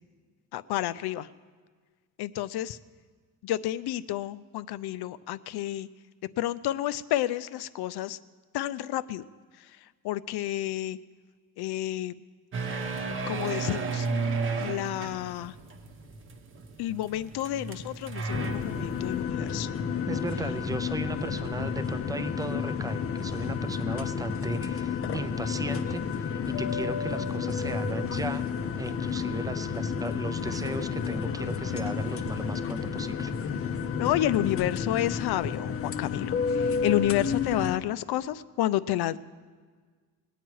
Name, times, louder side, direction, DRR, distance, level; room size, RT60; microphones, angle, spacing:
voice 1, 0.5-1.3 2.2-2.8 3.4-5.9 6.4-8.2 8.5-9.2 9.6-9.8 10.0-11.0 11.6-12.2 13.3-14.1 14.6-15.5 16.8-19.7 34.0-39.2, left 13 dB, 90° left, 15 dB, 0.5 m, -30 dB
sound 1, 12.5-19.2, right 4 dB, 35° right, 0.8 m, -33 dB
sound 2, 18.3-37.8, left 6 dB, 35° left, 0.6 m, -31 dB
voice 2, 20.1-28.5 28.8-33.3, right 2 dB, 10° right, 10 dB, 0.4 m, -36 dB
20.5 x 9.2 x 4.7 m, 1.5 s
cardioid pair, 180°, 38 cm